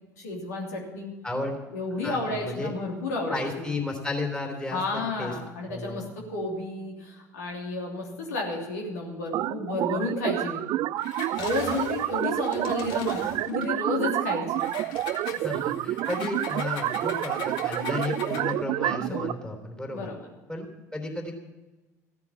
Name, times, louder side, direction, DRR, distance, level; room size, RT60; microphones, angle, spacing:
voice 1, 0.2-1.1 1.7-3.7 4.7-10.6 11.4-14.7 15.3-15.6 19.1-19.2 19.9-20.3, left 2 dB, 85° left, -1 dB, 3.0 m, -32 dB
voice 2, 1.2-1.6 2.0-2.7 3.3-5.3 5.7-6.1 15.4-20.1 20.5-21.3, left 2 dB, 10° left, 3 dB, 3.3 m, -33 dB
sound 1, 9.3-19.3, right 14 dB, 55° right, 0.5 m, -29 dB
Engine, 11.0-13.7 14.6-18.6, left 6 dB, 60° left, 1.7 m, -41 dB
14.5 x 9.6 x 7.3 m, 1.1 s
hypercardioid pair, 70°, 9 cm